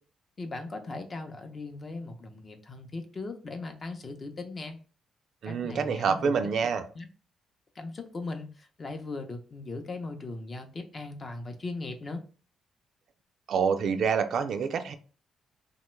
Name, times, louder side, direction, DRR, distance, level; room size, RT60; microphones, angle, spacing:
voice 1, 0.4-4.8 5.4-6.3 6.9-7.1 7.7-12.2, left 3 dB, 35° left, 5 dB, 0.6 m, -38 dB
voice 2, 5.4-6.8 13.5-15.0, right 6 dB, 65° right, 8 dB, 0.3 m, -27 dB
2.9 x 2.2 x 3.1 m, 0.37 s
cardioid pair, 90°, 0 cm